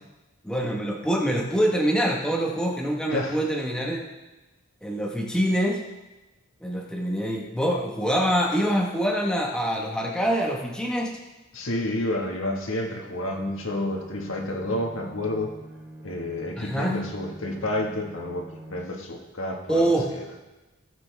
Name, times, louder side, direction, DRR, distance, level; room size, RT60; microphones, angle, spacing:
voice 1, 0.4-4.0 4.8-5.8 6.6-11.2 16.6-17.0 19.7-20.1, equal, 5° left, -1 dB, 1.3 m, -25 dB
voice 2, 11.5-15.5 16.0-20.3, left 1 dB, 70° left, 1 dB, 1.7 m, -30 dB
Bowed string instrument, 13.2-19.2, right 1 dB, 15° right, 3.5 m, -45 dB
18.0 x 7.0 x 3.5 m, 1.1 s
head